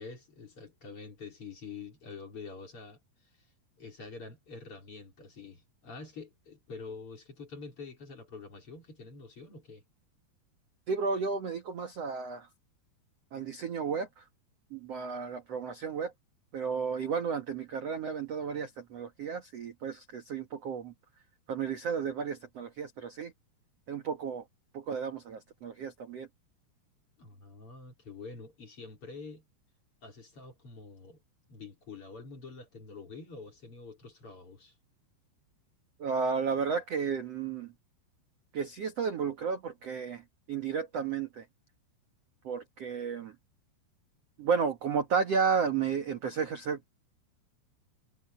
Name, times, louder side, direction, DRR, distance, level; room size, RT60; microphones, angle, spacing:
voice 1, 0.0-3.0 3.3-3.5 3.8-9.8 27.2-29.4 30.0-31.2 31.5-34.7, left 4 dB, 30° left, 4.1 m, -46 dB
voice 2, 10.9-12.5 13.3-14.2 14.7-16.1 16.5-20.9 21.5-23.3 23.9-24.4 24.7-26.3 36.0-37.7 38.5-41.4 42.4-43.3 44.4-47.0, right 6 dB, 65° right, 1.5 m, -33 dB
omnidirectional pair, 5.3 m